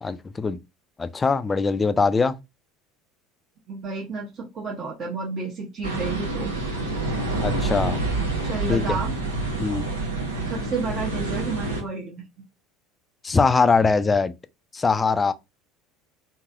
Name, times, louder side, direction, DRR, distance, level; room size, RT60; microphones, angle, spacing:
voice 1, 0.0-0.6 1.0-2.4 7.4-8.0 8.7-9.0 9.6-9.9 13.2-14.3 14.7-15.3, left 4 dB, 20° left, 0.3 m, -22 dB
voice 2, 3.7-6.5 8.4-9.2 10.4-12.2, right 4 dB, 40° right, 1.0 m, -31 dB
sound 1, 5.8-11.8, right 2 dB, 80° right, 0.9 m, -27 dB
3.1 x 2.8 x 2.4 m
figure-of-eight pair, 65°, 0 cm